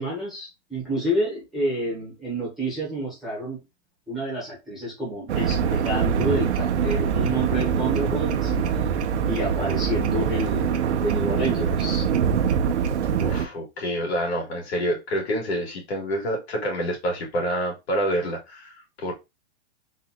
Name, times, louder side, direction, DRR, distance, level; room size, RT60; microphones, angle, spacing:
voice 1, 0.0-3.6 4.1-8.5 9.2-12.1, right 1 dB, ahead, 1.1 m, -29 dB
sound 1, 5.3-13.5, right 7 dB, 70° right, 0.8 m, -24 dB
voice 2, 13.2-19.1, equal, 65° left, 2.4 m, -27 dB
4.1 x 2.6 x 4.0 m
hypercardioid pair, 175°, 35 cm